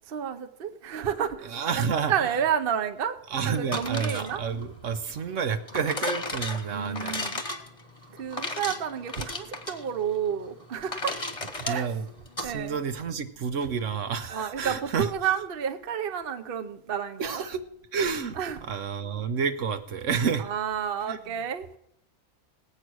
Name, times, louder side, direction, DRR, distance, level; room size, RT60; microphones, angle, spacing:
voice 1, 0.1-1.6 2.1-3.2 3.5-4.5 6.7-7.4 8.2-11.2 11.6-11.9 12.4-12.8 14.3-17.4 18.4-18.6 20.4-21.7, right 8 dB, 50° right, 0.9 m, -30 dB
voice 2, 1.4-2.3 3.3-7.3 11.6-12.1 12.4-15.1 17.2-17.6 17.9-20.5 21.1-21.4, right 6 dB, 70° right, 1.2 m, -30 dB
sound 1, 3.6-12.5, left 2 dB, 25° left, 1.1 m, -35 dB
18.5 x 8.3 x 6.2 m
omnidirectional pair, 1.4 m